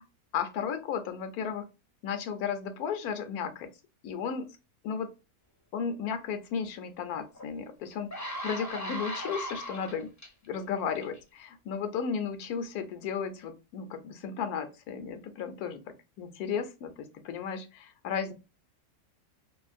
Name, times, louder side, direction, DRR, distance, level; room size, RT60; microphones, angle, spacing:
voice 1, 0.3-1.7 2.0-3.7 4.0-4.5 4.8-5.1 5.7-10.1 10.5-15.8 16.2-18.3, left 6 dB, 80° left, 8 dB, 1.1 m, -34 dB
sound 1, 7.3-7.4 7.9-10.3 11.0-11.2, equal, 25° left, 0.3 m, -37 dB
2.8 x 2.5 x 2.4 m, 0.28 s
omnidirectional pair, 1.6 m